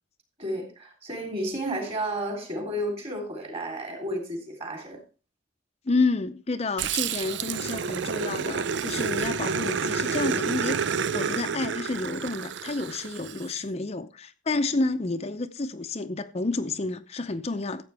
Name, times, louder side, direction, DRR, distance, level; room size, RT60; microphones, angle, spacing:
voice 1, 0.4-5.0, right 1 dB, 30° right, 3.4 m, -32 dB
voice 2, 5.9-17.8, left 3 dB, 30° left, 0.6 m, -30 dB
Growling, 6.8-13.5, right 6 dB, 60° right, 0.4 m, -29 dB
14.0 x 8.3 x 3.4 m
head